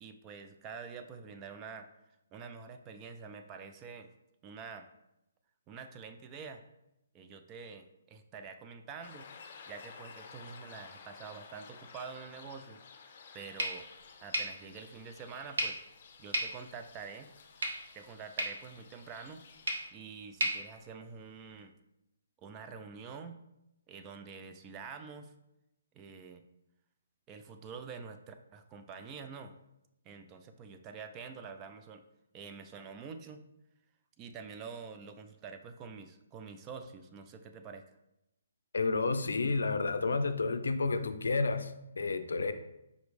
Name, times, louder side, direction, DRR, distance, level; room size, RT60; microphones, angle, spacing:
voice 1, 0.0-1.9 2.3-4.1 4.4-4.9 5.7-6.6 7.1-9.3 9.7-12.8 13.3-13.9 14.2-15.8 16.2-17.3 17.9-19.5 19.9-21.7 22.4-23.4 23.9-25.3 25.9-26.4 27.3-29.5 30.0-32.0 32.3-33.4 34.2-37.8, right 5 dB, 20° right, 7 dB, 0.3 m, -47 dB
sound 1, 9.0-19.9, left 5 dB, 45° left, 0.7 m, -54 dB
sound 2, 13.6-21.6, right 1 dB, 65° right, 1.2 m, -39 dB
voice 2, 38.7-42.5, left 3 dB, 80° left, 10 dB, 0.4 m, -31 dB
5.1 x 3.0 x 3.2 m, 0.87 s
hypercardioid pair, 150°, 0 cm